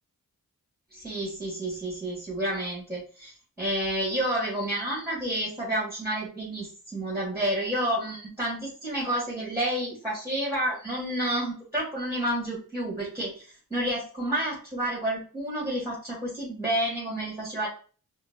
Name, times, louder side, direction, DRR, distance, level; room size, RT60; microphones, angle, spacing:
voice 1, 0.9-17.7, right 1 dB, 5° right, -5 dB, 1.7 m, -30 dB
4.3 x 2.2 x 2.7 m, 0.40 s
cardioid pair, 55°, 37 cm